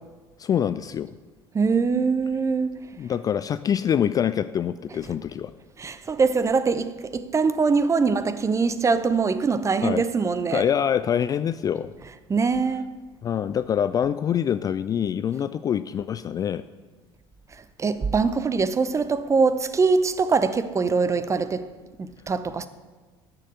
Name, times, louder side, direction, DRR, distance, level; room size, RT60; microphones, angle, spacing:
voice 1, 0.4-1.1 3.0-5.5 9.8-10.0 10.5-11.9 13.2-16.6, left 9 dB, 25° left, 0.3 m, -25 dB
voice 2, 1.5-2.8 5.8-10.7 12.3-12.9 17.8-21.7 22.0-22.7, right 4 dB, 20° right, 0.7 m, -23 dB
13.0 x 6.6 x 6.9 m
figure-of-eight pair, 65°, 14 cm